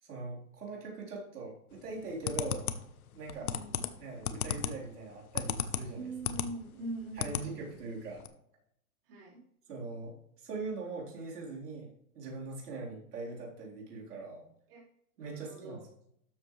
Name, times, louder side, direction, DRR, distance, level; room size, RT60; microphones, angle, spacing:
voice 1, 0.0-2.7 3.1-3.5 4.0-6.1 7.1-8.2 9.7-11.9 12.1-14.5 15.2-15.9, right 3 dB, 90° right, -3 dB, 4.0 m, -41 dB
sound 1, 1.9-6.5 6.9-7.5 7.8-7.9 8.2-8.3, left 8 dB, 70° left, 1.0 m, -35 dB
voice 2, 3.4-3.9 5.9-7.8 9.1-9.4 14.7-14.8 15.2-15.8, right 2 dB, 35° right, -6 dB, 4.3 m, -43 dB
13.0 x 7.4 x 3.3 m, 0.75 s
hypercardioid pair, 175°, 45 cm